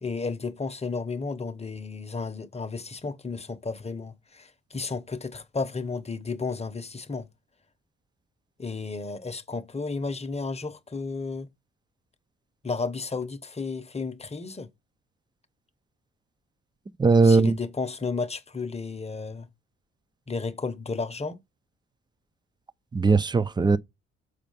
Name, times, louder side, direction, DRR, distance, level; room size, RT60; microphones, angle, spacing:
voice 1, 0.0-7.3 8.6-11.5 12.6-14.7 17.2-19.5 20.3-21.4, left 4 dB, 20° left, 0.9 m, -33 dB
voice 2, 17.0-17.6 22.9-23.8, right 4 dB, 15° right, 0.5 m, -19 dB
6.6 x 4.2 x 5.4 m
cardioid pair, 90°, 30 cm